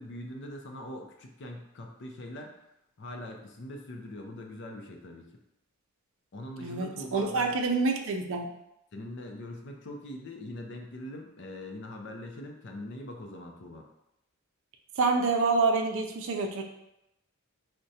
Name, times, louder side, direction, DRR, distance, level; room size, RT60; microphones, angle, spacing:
voice 1, 0.0-2.5 3.0-5.3 6.3-7.6 8.9-13.9, left 1 dB, 55° left, 2 dB, 0.5 m, -42 dB
voice 2, 6.6-8.5 15.0-16.6, right 3 dB, 60° right, 3 dB, 0.4 m, -27 dB
4.7 x 2.1 x 2.7 m, 0.86 s
head